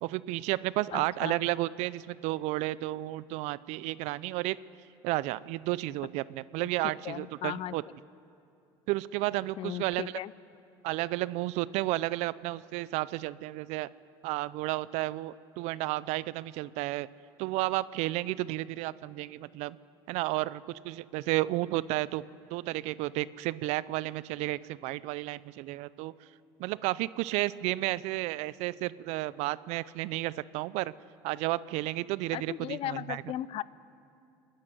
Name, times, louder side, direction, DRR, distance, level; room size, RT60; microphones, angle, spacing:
voice 1, 0.0-4.6 5.0-7.8 8.9-10.1 10.8-13.9 14.2-17.1 17.4-19.8 20.1-22.2 22.5-26.1 26.6-30.9 31.2-33.2, right 18 dB, 70° right, 19 dB, 0.5 m, -32 dB
voice 2, 0.9-1.4 7.0-7.8 9.6-10.3 32.3-33.6, left 13 dB, 55° left, 20 dB, 0.6 m, -36 dB
25.5 x 10.5 x 10.0 m, 2.6 s
supercardioid pair, 85°, 12 cm